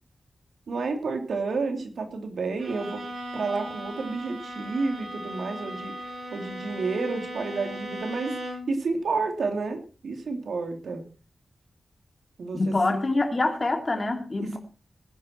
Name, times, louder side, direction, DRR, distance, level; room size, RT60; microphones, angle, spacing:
voice 1, 0.7-3.0 3.3-11.0 12.4-13.0 14.4-14.6, right 4 dB, 90° right, 3.1 m, -30 dB
Bowed string instrument, 2.6-8.8, equal, 65° right, 7.5 m, -37 dB
voice 2, 12.5-14.6, left 2 dB, 35° left, 3.0 m, -25 dB
19.5 x 10.5 x 4.6 m
wide cardioid pair, 110°, 0 cm